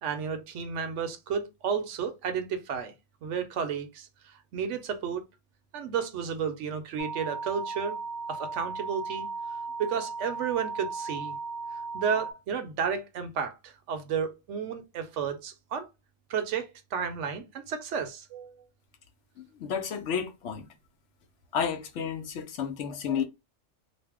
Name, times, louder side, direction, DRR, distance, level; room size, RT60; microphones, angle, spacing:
voice 1, 0.0-2.9 3.2-5.2 5.7-8.0 8.3-9.3 9.8-11.4 11.9-15.9 16.3-18.5, right 7 dB, 75° right, 0.9 m, -32 dB
sound 1, 7.0-12.3, right 4 dB, 50° left, 0.6 m, -36 dB
voice 2, 19.4-20.7 21.5-23.2, left 7 dB, 75° left, 0.9 m, -31 dB
2.6 x 2.1 x 3.4 m
omnidirectional pair, 1.3 m